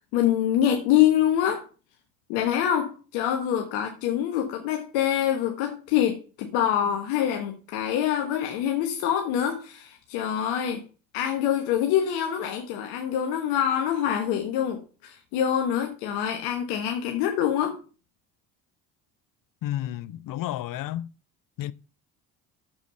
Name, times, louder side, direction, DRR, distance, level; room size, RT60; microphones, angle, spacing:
voice 1, 0.1-1.6 2.3-10.8 11.1-17.8, left 10 dB, 75° left, 1.3 m, -25 dB
voice 2, 19.6-21.1 21.6-21.7, left 13 dB, 50° left, 0.7 m, -31 dB
7.2 x 4.8 x 6.7 m
hypercardioid pair, 60°, 42 cm